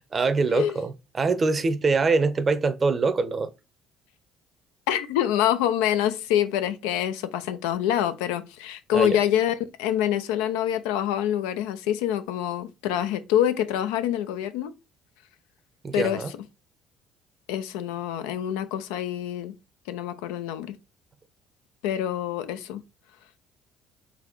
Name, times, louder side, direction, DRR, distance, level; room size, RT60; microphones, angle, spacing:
voice 1, 0.1-3.5 8.9-9.2 15.8-16.3, right 4 dB, 35° right, 0.6 m, -24 dB
voice 2, 4.9-14.7 15.9-16.2 17.5-19.5 19.9-20.7 21.8-22.8, left 11 dB, 85° left, 0.5 m, -26 dB
4.0 x 2.8 x 4.4 m
supercardioid pair, 75°, 0 cm